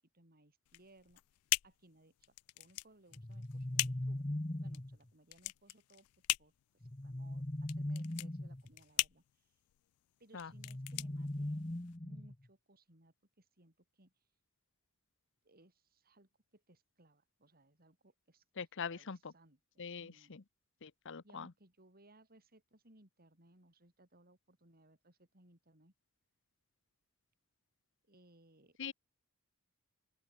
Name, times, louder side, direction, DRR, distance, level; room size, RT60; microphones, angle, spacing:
voice 1, 0.1-1.2 1.6-2.1 2.5-4.2 4.6-6.1 6.4-9.6 10.2-11.7 12.0-14.1 15.4-18.4 18.9-20.3 21.2-25.9 28.1-28.9, right 1 dB, 45° right, 6.5 m, -65 dB
sound 1, 0.7-12.0, left 20 dB, 85° left, 0.3 m, -40 dB
sound 2, 3.1-5.0 6.8-8.7 10.5-12.5, left 1 dB, 20° left, 1.0 m, -40 dB
voice 2, 18.6-19.3 19.8-20.4 20.8-21.5 28.8-28.9, left 6 dB, 60° left, 0.9 m, -43 dB
open air
head